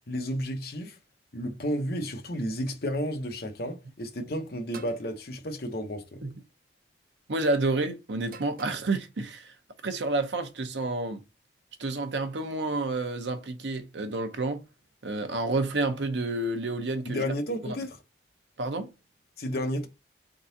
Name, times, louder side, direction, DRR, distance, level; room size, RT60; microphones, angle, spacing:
voice 1, 0.1-1.0 1.3-6.2 17.0-18.0 19.4-19.9, equal, 55° left, 0.8 m, -32 dB
sound 1, 4.7-5.1 6.3-6.6 8.2-8.9, right 4 dB, 50° right, 0.5 m, -46 dB
voice 2, 7.3-9.5 9.8-11.2 11.8-14.6 15.0-17.2 17.7-17.8 18.6-18.9, right 2 dB, 80° right, 0.8 m, -29 dB
3.8 x 3.7 x 2.7 m
head